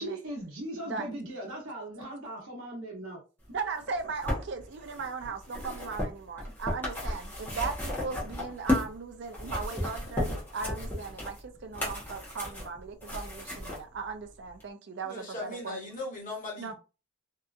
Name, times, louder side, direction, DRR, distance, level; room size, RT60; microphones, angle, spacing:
voice 1, 0.0-3.2 5.7-5.8, right 1 dB, 70° right, 0.8 m, -38 dB
voice 2, 3.5-15.8 16.6-16.7, right 4 dB, 50° right, 0.4 m, -37 dB
sound 1, 3.8-9.0 9.3-13.8 14.6-14.7, left 1 dB, 10° left, 0.8 m, -34 dB
voice 3, 15.0-16.7, left 2 dB, 35° left, 1.1 m, -38 dB
2.7 x 2.3 x 2.4 m
head